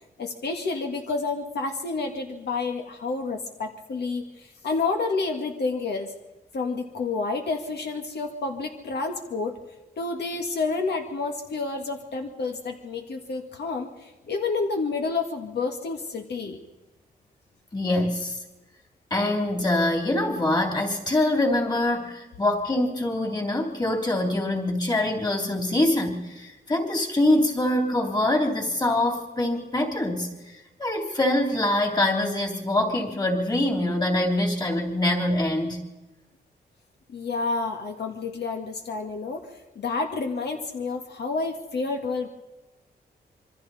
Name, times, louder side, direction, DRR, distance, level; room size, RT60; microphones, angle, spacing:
voice 1, 0.2-6.1 6.5-9.5 10.0-16.6 37.1-39.5 39.8-42.3, left 4 dB, 75° left, 3 dB, 1.9 m, -29 dB
voice 2, 17.7-18.4 19.1-35.8, left 1 dB, 25° left, 2 dB, 3.2 m, -24 dB
26.5 x 23.5 x 4.2 m, 1.1 s
wide cardioid pair, 160°, 17 cm